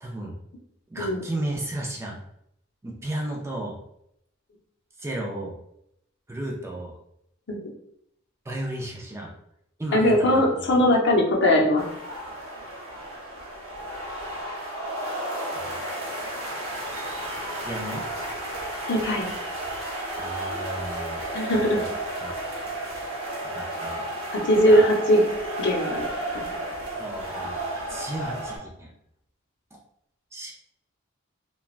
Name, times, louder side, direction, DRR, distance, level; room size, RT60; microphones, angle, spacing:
voice 1, 0.0-0.3 0.9-2.2 2.8-3.8 5.0-5.6 6.3-7.0 8.5-9.3 9.8-10.4 15.5-15.7 17.6-18.1 20.2-21.2 21.5-21.9 22.2-22.9 23.4-24.1 24.6-24.9 26.9-28.9 29.7-29.8 30.3-30.5, right 1 dB, 15° right, -1 dB, 0.4 m, -34 dB
voice 2, 9.9-11.8 18.9-19.3 21.3-21.8 24.5-25.2 25.6-26.1, equal, 60° left, -1 dB, 0.6 m, -20 dB
sound 1, 11.8-28.6, right 1 dB, 75° right, 0.8 m, -33 dB
3.1 x 2.2 x 2.4 m, 0.76 s
head